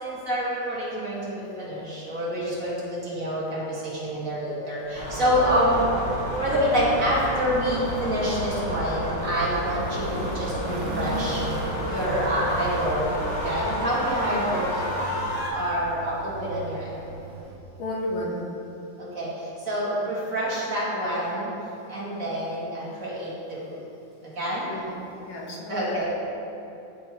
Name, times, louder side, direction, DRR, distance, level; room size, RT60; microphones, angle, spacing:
voice 1, 0.0-5.8 6.4-11.4 11.9-13.1 13.4-15.0 15.5-16.9 19.0-19.3 19.7-21.5 21.9-23.6 24.4-24.7 25.7-26.1, equal, 45° right, -8 dB, 2.0 m, -27 dB
sound 1, 4.8-17.6, right 3 dB, 75° right, 1.4 m, -39 dB
sound 2, 5.0-15.5, left 1 dB, 55° left, 1.8 m, -30 dB
voice 2, 17.8-18.4 20.0-20.1 24.7-24.8 25.3-25.8, left 1 dB, 85° left, -2 dB, 1.8 m, -32 dB
12.5 x 4.7 x 2.9 m, 2.8 s
omnidirectional pair, 2.1 m